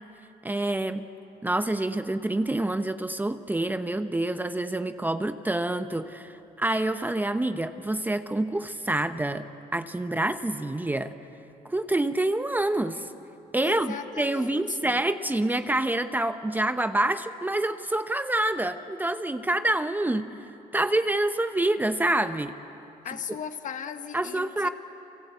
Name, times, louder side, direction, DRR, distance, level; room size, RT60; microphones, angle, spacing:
voice 1, 0.4-1.1 1.4-9.5 9.7-11.1 11.6-13.1 13.5-20.3 20.7-22.5 24.1-24.7, right 1 dB, 10° right, 9 dB, 0.8 m, -27 dB
voice 2, 13.6-15.0 23.0-24.7, left 8 dB, 50° left, 8 dB, 1.6 m, -38 dB
30.0 x 24.5 x 8.2 m, 2.9 s
cardioid pair, 110°, 17 cm